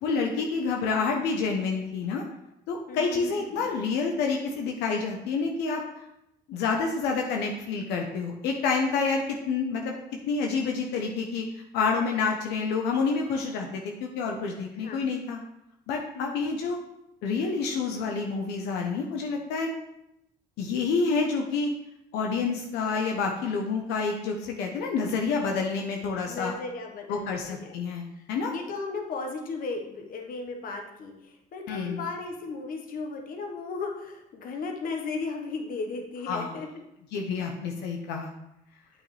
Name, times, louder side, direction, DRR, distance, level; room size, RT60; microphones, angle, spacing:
voice 1, 0.0-2.2 2.7-5.8 6.5-9.9 10.3-15.4 15.9-16.8 17.2-19.7 20.6-21.7 22.1-26.5 27.1-28.5 31.7-32.0 36.3-36.5 37.1-38.3, left 4 dB, 90° left, 1 dB, 0.9 m, -28 dB
voice 2, 2.9-3.6 14.8-15.0 16.1-16.3 26.3-27.7 28.5-36.7, left 3 dB, 55° left, 3 dB, 1.3 m, -36 dB
8.3 x 5.9 x 3.3 m, 0.85 s
cardioid pair, 110°, 17 cm